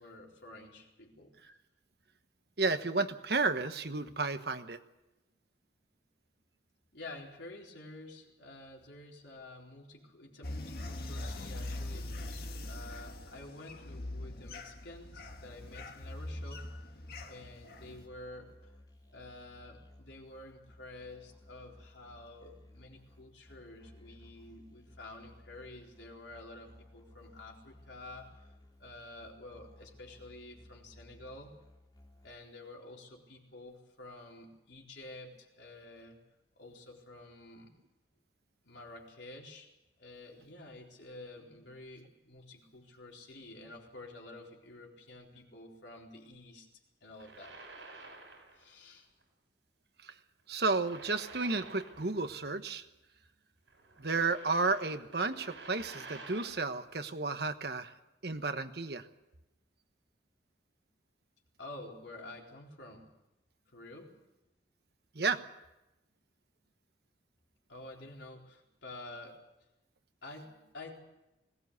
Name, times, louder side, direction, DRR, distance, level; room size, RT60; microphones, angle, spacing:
voice 1, 0.0-1.3 6.9-16.7 17.2-18.6 19.1-28.5 28.8-31.5 32.2-36.2 36.6-37.7 38.6-39.7 40.0-46.7 47.0-47.6 48.5-49.1 61.6-63.1 63.7-64.1 67.7-69.4 70.2-71.0, left 2 dB, 75° left, 0 dB, 4.1 m, -50 dB
voice 2, 2.6-4.8 50.0-50.1 50.5-52.8 54.0-57.9 58.2-59.1 65.1-65.4, right 3 dB, 60° right, 9 dB, 1.2 m, -32 dB
sound 1, 10.4-18.1, left 1 dB, 55° left, 1.7 m, -42 dB
Musical instrument, 15.3-32.3, left 1 dB, 20° left, 3.5 m, -58 dB
sound 2, 47.1-48.7 49.0-49.2 50.5-52.4 52.7-52.8 53.7-56.8, right 3 dB, 85° right, 7.6 m, -50 dB
20.5 x 17.5 x 8.2 m, 0.94 s
head